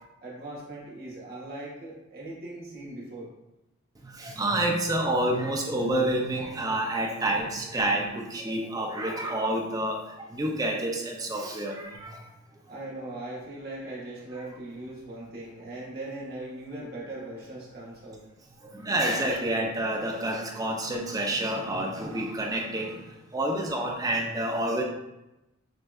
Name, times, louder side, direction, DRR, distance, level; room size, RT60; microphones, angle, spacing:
voice 1, 0.2-3.3 12.7-18.2, right 2 dB, 50° right, -5 dB, 1.1 m, -39 dB
voice 2, 4.0-10.0 10.3-12.2 14.4-14.5 18.6-23.0 23.3-24.8, right 1 dB, 20° right, 1 dB, 0.4 m, -28 dB
6.1 x 2.2 x 2.3 m, 0.95 s
head